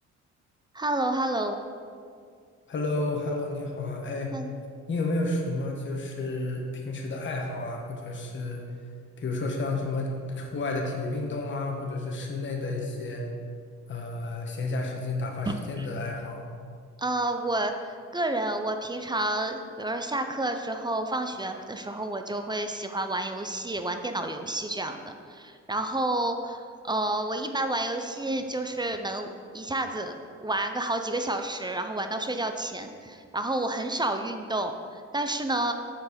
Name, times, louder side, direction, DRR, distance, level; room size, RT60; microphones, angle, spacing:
voice 1, 0.7-1.6 4.3-4.5 15.5-15.9 17.0-17.7 18.1-29.3 29.5-30.1 30.4-35.7, right 2 dB, 15° right, 6 dB, 0.5 m, -30 dB
voice 2, 2.7-4.3 4.9-8.6 9.2-13.2 13.9-16.4, left 2 dB, 40° left, 0 dB, 1.2 m, -31 dB
7.0 x 4.5 x 5.1 m, 2.2 s
cardioid pair, 90°, 30 cm